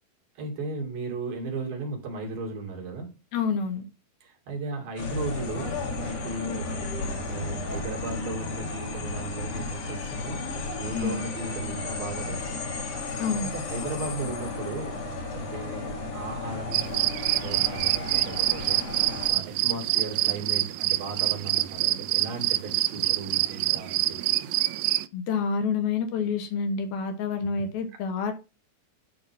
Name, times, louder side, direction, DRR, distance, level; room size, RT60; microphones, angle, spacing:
voice 1, 0.4-3.2 4.2-6.8 7.1-10.4 10.8-12.8 13.5-15.0 15.3-24.3 27.4-27.5, right 3 dB, 65° right, 4.2 m, -36 dB
voice 2, 3.3-3.8 10.9-11.2 13.2-13.5 25.1-28.3, left 5 dB, 75° left, 3.2 m, -28 dB
sound 1, 5.0-19.3, left 3 dB, 60° left, 3.5 m, -34 dB
sound 2, 16.7-25.1, right 16 dB, 80° right, 2.1 m, -26 dB
11.0 x 3.9 x 5.8 m
omnidirectional pair, 4.4 m